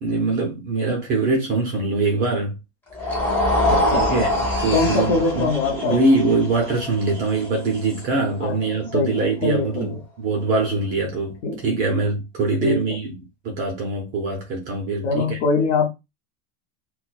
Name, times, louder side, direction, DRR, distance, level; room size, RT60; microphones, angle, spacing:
voice 1, 0.0-2.6 3.0-3.1 4.1-13.1 13.4-15.4, right 3 dB, 25° right, 0.6 m, -23 dB
sound 1, 2.9-9.2, left 1 dB, 5° left, 0.9 m, -25 dB
voice 2, 3.6-4.2 4.7-6.0 8.4-10.0 11.4-11.6 12.6-12.9 15.0-15.9, left 3 dB, 40° left, 0.6 m, -23 dB
4.2 x 2.2 x 2.3 m
supercardioid pair, 180°, 34 cm